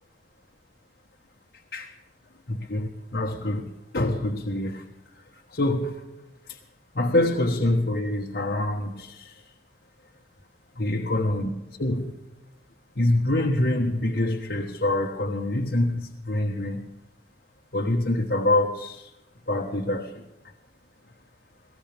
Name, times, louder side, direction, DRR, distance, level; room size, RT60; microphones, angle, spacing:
voice 1, 2.5-4.9 5.1-6.0 6.5-6.6 6.9-9.5 10.8-11.5 11.8-12.2 12.9-16.9 17.7-19.1 19.5-20.2, left 1 dB, 70° left, 1.4 m, -26 dB
21.0 x 18.0 x 3.5 m
head